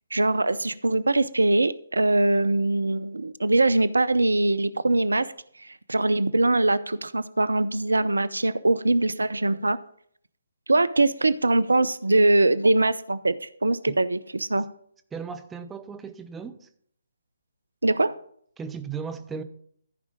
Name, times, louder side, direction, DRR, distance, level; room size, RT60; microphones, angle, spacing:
voice 1, 0.1-5.3 5.6-9.8 10.7-14.6 17.8-18.1, right 2 dB, 75° right, 0.5 m, -22 dB
voice 2, 15.1-16.7 18.6-19.4, right 6 dB, 10° right, 0.6 m, -36 dB
14.5 x 4.9 x 5.2 m
figure-of-eight pair, 140°, 0 cm